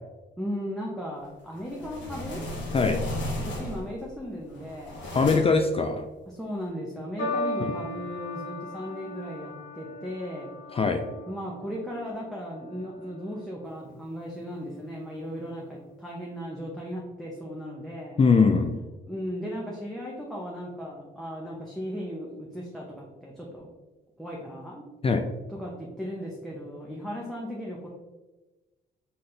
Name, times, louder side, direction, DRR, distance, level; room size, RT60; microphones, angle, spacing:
voice 1, 0.4-2.5 3.4-5.0 6.3-10.5 11.3-18.2 19.1-23.7 24.2-24.8 25.5-27.9, equal, ahead, -4 dB, 0.9 m, -36 dB
sound 1, 1.5-4.0 4.5-5.7, left 1 dB, 65° left, 1.4 m, -34 dB
voice 2, 5.1-6.0 10.7-11.0 18.2-18.8 25.0-25.2, left 4 dB, 30° left, 5 dB, 0.4 m, -21 dB
sound 2, 7.2-13.7 14.6-15.0, left 1 dB, 80° left, 1.3 m, -37 dB
4.2 x 3.8 x 3.3 m, 1.1 s
cardioid pair, 90°, 20 cm